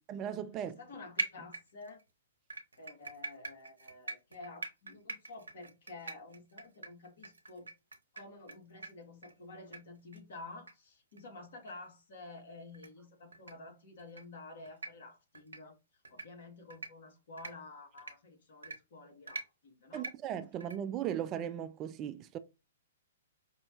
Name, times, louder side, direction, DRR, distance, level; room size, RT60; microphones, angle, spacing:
voice 1, 0.1-0.8 19.9-22.4, right 10 dB, 30° right, 0.3 m, -37 dB
voice 2, 0.6-2.0 2.8-7.7 8.1-15.7 16.1-20.1, left 3 dB, 60° left, 1.5 m, -50 dB
sound 1, 1.2-2.0 2.5-8.5 8.8-8.9 9.2-9.3 9.7-9.8 10.1-10.2 10.7-10.8 11.1-11.2 11.7-11.8 12.7-12.9 13.3-13.5 14.0-14.2 14.6-14.9 15.3-15.6 16.0-16.3 16.7-16.9 17.4-17.5 18.0-18.1 18.6-18.8 19.3-19.4 19.9-20.1 20.6-20.7, right 3 dB, 85° right, 0.7 m, -41 dB
5.2 x 2.2 x 2.9 m
figure-of-eight pair, 120°, 0 cm